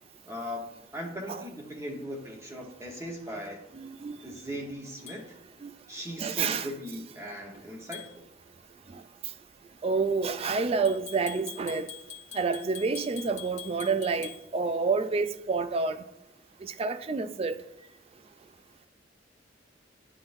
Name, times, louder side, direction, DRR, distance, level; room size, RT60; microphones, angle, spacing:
voice 1, 0.3-3.6 4.2-5.2 5.9-8.0, equal, 15° right, 1.1 m, -39 dB
voice 2, 3.7-4.4 5.6-5.7 6.2-6.7 8.9-9.0 9.8-11.9 12.3-16.0 16.6-17.6, right 4 dB, 30° right, 0.3 m, -29 dB
sound 1, 5.1-5.2 7.9-8.1 10.8-14.4, left 9 dB, 40° left, 1.2 m, -44 dB
11.0 x 3.8 x 2.6 m
head